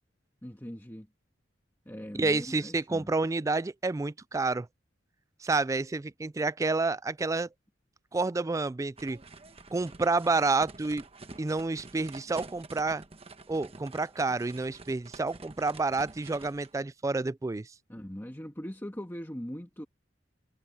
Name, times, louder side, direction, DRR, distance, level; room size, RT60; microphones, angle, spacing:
voice 1, 0.4-1.1 1.8-3.1 17.9-19.8, equal, 10° left, 1.6 m, -40 dB
voice 2, 2.2-4.7 5.4-7.5 8.1-9.2 9.7-11.0 11.4-13.0 13.5-17.7, right 3 dB, 15° right, 0.3 m, -29 dB
sound 1, 9.0-16.7, right 3 dB, 30° right, 1.2 m, -49 dB
head